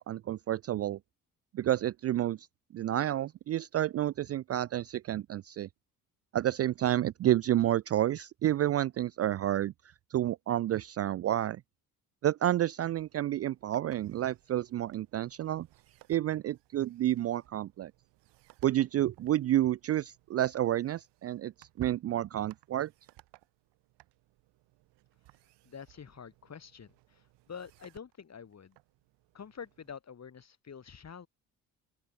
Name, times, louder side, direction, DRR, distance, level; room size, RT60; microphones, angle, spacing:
voice 1, 0.1-1.0 1.5-2.4 2.7-5.7 6.3-9.7 10.1-11.6 12.2-15.7 16.1-17.9 18.6-22.9, right 12 dB, 35° right, 0.4 m, -30 dB
sound 1, 13.0-30.0, right 18 dB, 70° right, 7.6 m, -63 dB
voice 2, 25.6-28.8 29.3-31.3, left 7 dB, 35° left, 2.4 m, -47 dB
open air
hypercardioid pair, 45°, 44 cm